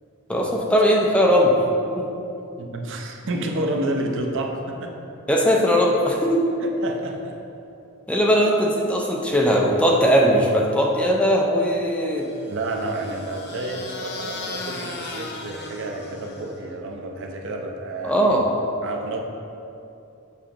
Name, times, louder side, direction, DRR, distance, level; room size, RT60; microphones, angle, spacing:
voice 1, 0.3-1.5 2.0-2.1 5.3-6.4 8.1-12.3 18.0-18.5, equal, 5° left, -2 dB, 0.5 m, -19 dB
voice 2, 2.6-4.9 6.6-7.4 12.5-18.4 18.8-19.2, right 2 dB, 60° right, 2 dB, 0.6 m, -30 dB
sound 1, 12.2-16.7, left 3 dB, 50° left, 0.7 m, -37 dB
7.1 x 4.9 x 2.9 m, 2.8 s
head